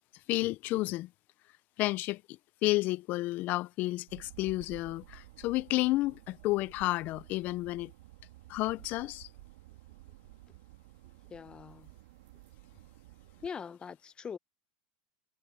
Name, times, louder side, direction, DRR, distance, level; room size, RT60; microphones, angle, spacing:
voice 1, 0.3-1.1 1.8-7.9 8.5-9.3, left 19 dB, 50° left, 0.6 m, -31 dB
sound 1, 4.1-13.5, right 18 dB, 80° right, 2.2 m, -53 dB
voice 2, 11.3-11.9 13.4-14.4, left 6 dB, 25° left, 1.2 m, -42 dB
supercardioid pair, 110°, 4 cm